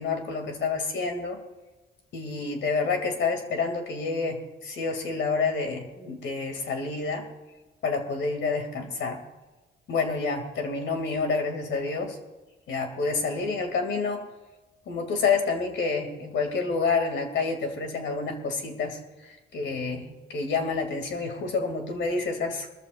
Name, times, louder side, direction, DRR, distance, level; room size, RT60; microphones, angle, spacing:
voice 1, 0.0-1.4 2.1-7.3 7.8-9.2 9.9-12.2 12.7-14.3 14.9-22.7, left 4 dB, 70° left, 4 dB, 2.6 m, -28 dB
22.5 x 13.5 x 2.5 m, 1.2 s
cardioid pair, 90°, 20 cm